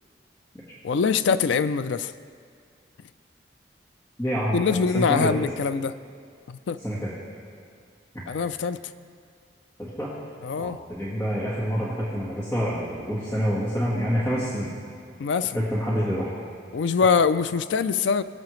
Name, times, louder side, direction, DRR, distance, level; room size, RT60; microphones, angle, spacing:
voice 1, 0.8-2.1 4.5-6.0 6.5-6.8 8.3-8.8 10.4-10.8 15.2-15.6 16.7-18.2, left 5 dB, 80° left, 13 dB, 0.4 m, -23 dB
voice 2, 4.2-5.4 6.8-7.1 8.1-8.2 9.8-10.1 10.6-14.7 15.5-16.4, equal, 15° left, -7 dB, 1.5 m, -27 dB
22.0 x 7.5 x 3.1 m, 2.2 s
head